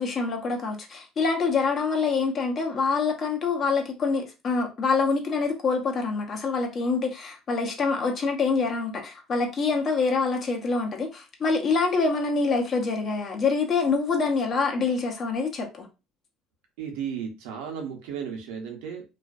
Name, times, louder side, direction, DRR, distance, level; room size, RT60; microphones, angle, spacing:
voice 1, 0.0-15.9, left 4 dB, 45° left, 2 dB, 0.7 m, -25 dB
voice 2, 16.8-19.0, right 7 dB, 85° right, 2 dB, 0.7 m, -34 dB
2.4 x 2.1 x 2.4 m, 0.28 s
supercardioid pair, 95°, 0 cm